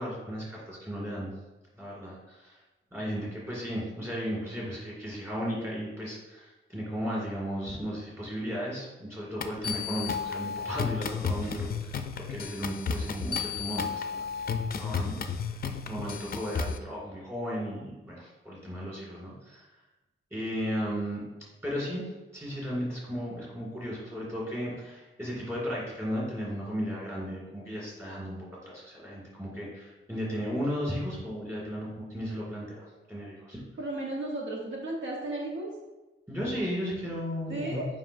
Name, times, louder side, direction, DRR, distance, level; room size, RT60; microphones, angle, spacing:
voice 1, 0.0-1.3 1.8-2.6 2.9-12.0 12.3-14.3 14.7-15.2 15.9-19.7 20.3-21.2 21.6-33.6 36.3-37.8, equal, 10° right, -5 dB, 2.1 m, -35 dB
sound 1, 9.4-16.8, left 5 dB, 45° left, 0.4 m, -33 dB
voice 2, 33.8-35.7 37.5-37.9, right 2 dB, 65° right, -2 dB, 1.1 m, -34 dB
7.5 x 5.1 x 2.6 m, 1.1 s
wide cardioid pair, 170°, 21 cm